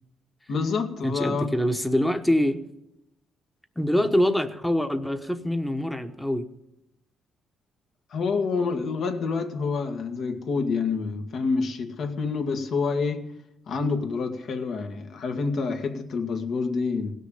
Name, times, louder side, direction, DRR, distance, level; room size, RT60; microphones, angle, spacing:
voice 1, 0.5-1.5 8.1-13.3 13.7-17.1, left 4 dB, 65° left, 1.7 m, -27 dB
voice 2, 1.0-2.6 3.8-6.5, left 1 dB, 5° left, 1.1 m, -24 dB
17.0 x 6.5 x 8.5 m
cardioid pair, 90°, 0 cm